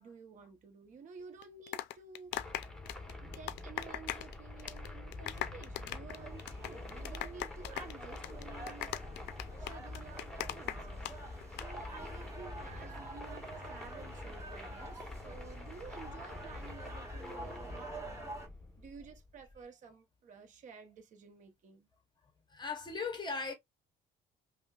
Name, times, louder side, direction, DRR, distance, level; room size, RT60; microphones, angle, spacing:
voice 1, 0.0-2.4 3.2-9.0 9.6-11.1 11.6-18.4 18.8-21.9, right 5 dB, 45° right, 0.7 m, -52 dB
sound 1, 1.4-4.3 4.6-4.9 5.1-11.1 11.4-11.7, left 14 dB, 80° left, 0.4 m, -39 dB
sound 2, 2.3-19.6, left 2 dB, 5° left, 1.0 m, -46 dB
sound 3, 6.1-18.5, right 2 dB, 15° right, 1.4 m, -49 dB
voice 2, 22.5-23.5, left 4 dB, 25° left, 0.7 m, -39 dB
5.3 x 2.1 x 2.3 m
cardioid pair, 125°, 18 cm